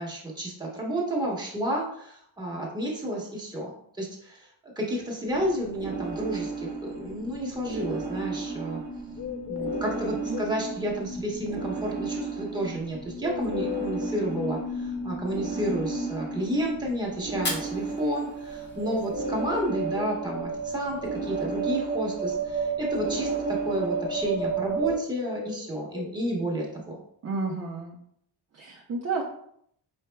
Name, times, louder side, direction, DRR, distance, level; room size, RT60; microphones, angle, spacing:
voice 1, 0.0-3.7 4.0-8.8 9.4-27.0, right 1 dB, 10° right, -4 dB, 1.1 m, -31 dB
sound 1, 5.3-24.9, right 4 dB, 65° right, 0.8 m, -33 dB
sound 2, 9.2-10.6 13.2-14.6 18.8-20.2 24.8-26.2, left 8 dB, 65° left, 0.5 m, -36 dB
Fire, 17.3-19.3, left 2 dB, 25° left, 0.8 m, -37 dB
voice 2, 27.2-28.0 28.5-29.2, right 4 dB, 35° right, -2 dB, 0.6 m, -31 dB
4.9 x 4.2 x 2.2 m, 0.68 s
wide cardioid pair, 155°, 46 cm